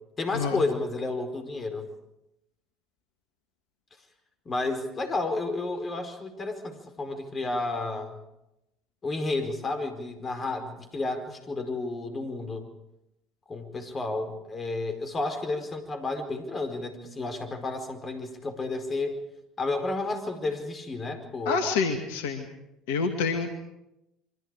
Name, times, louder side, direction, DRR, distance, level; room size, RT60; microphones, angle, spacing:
voice 1, 0.2-1.9 4.4-8.1 9.0-12.7 13.5-19.2 19.6-21.6, left 2 dB, 30° left, 6 dB, 4.7 m, -31 dB
voice 2, 21.5-22.5 22.9-23.5, left 5 dB, 70° left, 5 dB, 2.3 m, -27 dB
28.5 x 24.5 x 5.0 m, 0.87 s
hypercardioid pair, 65°, 0 cm